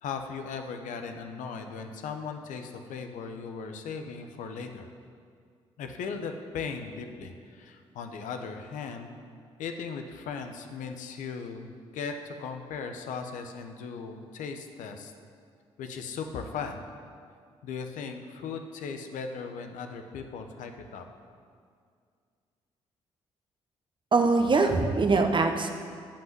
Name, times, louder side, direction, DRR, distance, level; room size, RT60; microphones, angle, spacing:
voice 1, 0.0-4.9 5.8-9.1 9.6-15.1 15.8-16.8 17.6-21.1, left 5 dB, 70° left, 6 dB, 0.9 m, -38 dB
voice 2, 24.1-25.7, right 3 dB, 35° right, 5 dB, 1.1 m, -23 dB
8.7 x 5.6 x 7.5 m, 2.2 s
hypercardioid pair, 50°, 14 cm